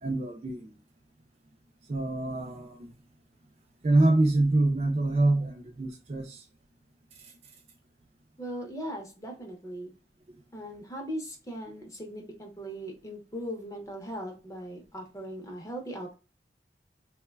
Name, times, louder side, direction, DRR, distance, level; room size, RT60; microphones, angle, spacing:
voice 1, 0.0-0.7 1.9-2.9 3.8-6.4, right 2 dB, 35° right, 0.3 m, -25 dB
voice 2, 8.4-9.9 10.5-16.1, equal, 20° left, 0.5 m, -39 dB
3.0 x 2.1 x 2.2 m
head